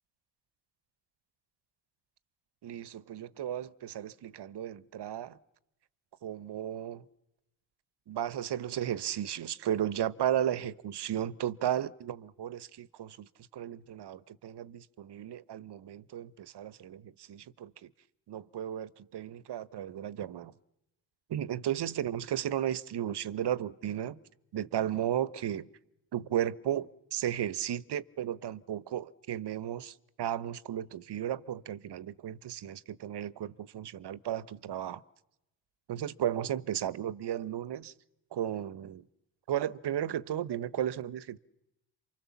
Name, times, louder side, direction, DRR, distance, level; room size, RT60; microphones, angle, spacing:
voice 1, 2.6-5.4 6.2-7.0 8.1-17.9 18.3-20.5 21.3-24.2 24.5-25.7 26.1-35.0 35.9-37.9 38.3-39.0 39.5-41.4, right 10 dB, 55° right, 1.1 m, -34 dB
28.0 x 25.0 x 7.2 m
supercardioid pair, 60°, 49 cm